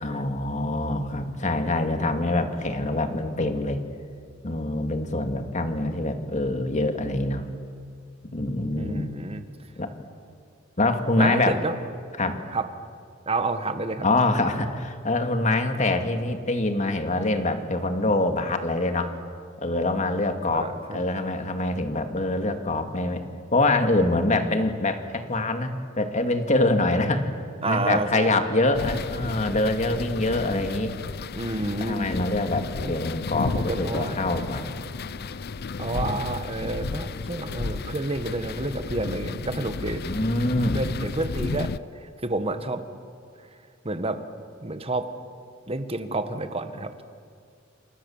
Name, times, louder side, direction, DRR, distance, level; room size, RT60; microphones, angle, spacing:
voice 1, 0.0-3.8 4.4-7.5 8.3-9.1 9.8-9.9 10.8-11.6 12.2-12.4 14.0-19.1 19.6-23.2 23.5-27.3 27.7-30.9 31.8-34.7 40.0-40.8, left 2 dB, 40° left, 6 dB, 2.3 m, -25 dB
voice 2, 8.8-9.4 11.2-11.7 12.5-12.7 13.2-14.0 20.5-21.0 27.6-28.4 31.3-32.1 32.8-32.9 33.5-34.2 35.8-40.0 40.7-41.7 42.0-42.8 43.8-44.2 44.6-45.1 45.7-47.0, right 2 dB, 30° right, 9 dB, 1.6 m, -29 dB
sound 1, 28.7-41.8, left 4 dB, 55° left, 0.6 m, -33 dB
28.5 x 26.5 x 7.4 m, 2.2 s
head